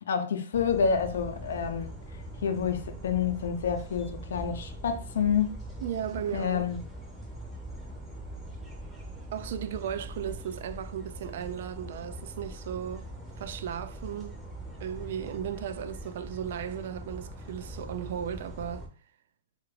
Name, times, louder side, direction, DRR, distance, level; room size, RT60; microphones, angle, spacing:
voice 1, 0.0-1.9 2.4-5.6 6.3-6.8, left 7 dB, 85° left, 0.5 m, -28 dB
sound 1, 0.5-18.9, right 1 dB, 5° right, 0.7 m, -42 dB
voice 2, 5.8-6.7 9.3-13.1 13.4-14.4 14.8-18.9, right 9 dB, 60° right, 0.3 m, -36 dB
3.3 x 2.4 x 3.3 m
hypercardioid pair, 160°, 0 cm